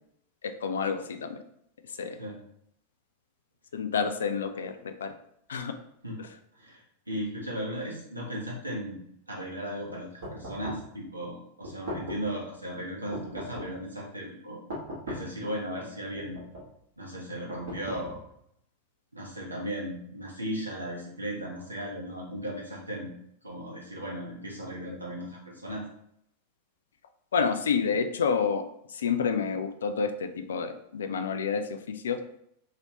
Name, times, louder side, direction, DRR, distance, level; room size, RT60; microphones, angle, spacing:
voice 1, 0.6-1.4 2.0-2.2 3.7-5.1 5.5-5.7 27.3-28.6 28.9-32.2, left 6 dB, 65° left, 8 dB, 0.3 m, -29 dB
voice 2, 6.5-9.0 9.3-14.6 15.1-16.4 17.0-18.2 19.1-23.1 23.4-25.8, equal, 85° right, -3 dB, 0.9 m, -36 dB
sound 1, 10.2-10.9 11.6-12.4 13.1-13.9 14.7-15.4 16.2-16.8 17.5-18.4, equal, 60° right, 1.2 m, -39 dB
3.1 x 2.7 x 2.8 m, 0.74 s
figure-of-eight pair, 90°, 0 cm